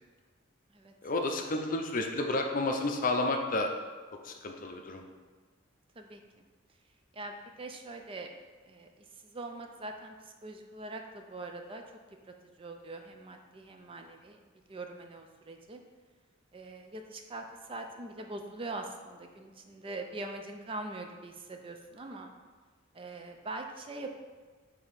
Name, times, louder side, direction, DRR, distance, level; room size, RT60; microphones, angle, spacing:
voice 1, 1.0-3.7 4.2-5.0, left 2 dB, 40° left, 3 dB, 0.6 m, -31 dB
voice 2, 7.1-8.3 8.7-8.9 9.2-10.1 10.4-11.8 12.6-14.4 14.7-15.8 16.5-22.3 22.9-24.1, right 2 dB, 25° right, 4 dB, 0.4 m, -42 dB
5.2 x 3.5 x 5.7 m, 1.4 s
head